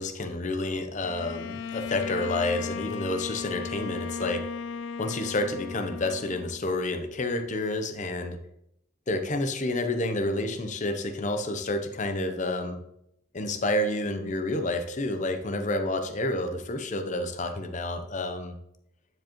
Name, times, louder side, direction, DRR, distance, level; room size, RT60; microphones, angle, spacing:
voice 1, 0.0-4.4 5.0-8.4 9.1-12.8 13.3-18.5, left 2 dB, 35° left, 7 dB, 0.7 m, -29 dB
Bowed string instrument, 1.0-6.8, left 6 dB, 70° left, 0.3 m, -36 dB
9.4 x 5.0 x 3.0 m, 0.78 s
head